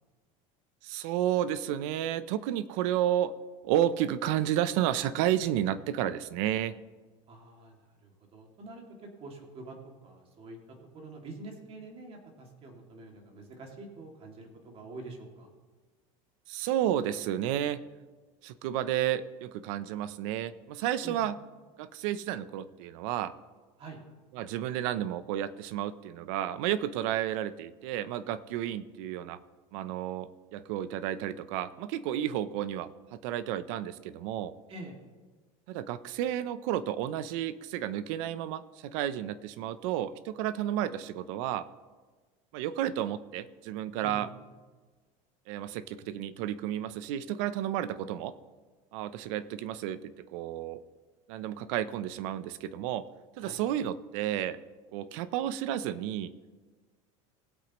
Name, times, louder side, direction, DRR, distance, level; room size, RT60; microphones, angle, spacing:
voice 1, 0.8-3.3 3.6-6.7 16.5-17.8 18.4-21.4 21.8-23.3 24.3-29.4 29.7-34.5 35.7-41.7 42.5-44.3 45.5-48.3 48.9-50.8 51.3-53.0 53.4-54.6 54.9-56.3, right 11 dB, 70° right, 15 dB, 0.7 m, -31 dB
voice 2, 7.3-8.8 9.2-9.8 10.0-10.6 10.9-15.5 21.0-21.3 23.8-24.0 34.7-35.0 44.0-44.3 53.4-53.6, right 2 dB, 35° right, 2 dB, 2.4 m, -46 dB
20.0 x 8.3 x 3.1 m, 1.4 s
supercardioid pair, 145°, 17 cm